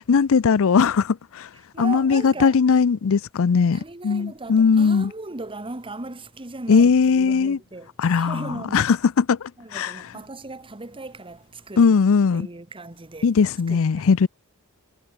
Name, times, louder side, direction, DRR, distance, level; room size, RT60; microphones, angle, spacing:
voice 1, 0.1-1.5 1.8-5.1 6.7-7.6 8.0-9.9 11.8-12.5 13.2-14.3, left 5 dB, 70° left, 0.5 m, -19 dB
voice 2, 1.7-2.6 3.7-7.9 8.1-8.9 9.6-11.4 11.7-11.9 12.3-13.3 13.7-13.8, right 2 dB, 25° right, 1.4 m, -37 dB
head